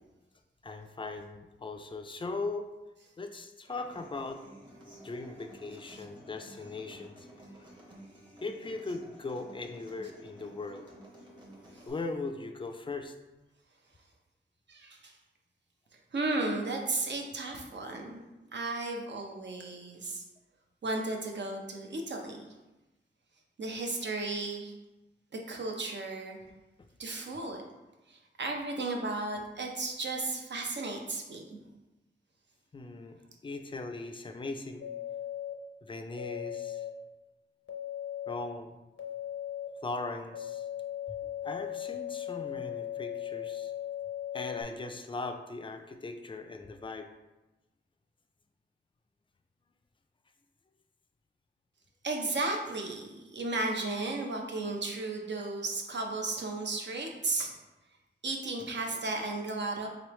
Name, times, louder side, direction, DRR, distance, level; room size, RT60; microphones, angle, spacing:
voice 1, 0.6-2.7 3.2-4.4 5.0-7.3 8.4-10.9 11.9-13.1 32.7-33.2 33.4-34.8 35.8-36.8 38.3-38.8 39.8-40.7 41.1-41.2 41.4-43.7 44.3-47.1, left 3 dB, 25° left, 6 dB, 0.3 m, -39 dB
Human voice / Acoustic guitar, 3.9-11.9, right 1 dB, 25° right, 0.9 m, -53 dB
voice 2, 14.7-15.1 16.1-18.2 18.5-20.2 20.8-22.4 23.6-24.7 25.5-26.4 27.0-27.6 28.1-31.4 52.0-57.5 58.2-59.9, right 2 dB, 65° right, 1 dB, 0.6 m, -34 dB
sound 1, 34.8-35.5 36.1-36.9 37.7-38.3 39.0-39.7 40.3-44.6, left 11 dB, 80° left, 0.6 m, -38 dB
3.9 x 3.1 x 3.0 m, 1.1 s
wide cardioid pair, 95°, 20 cm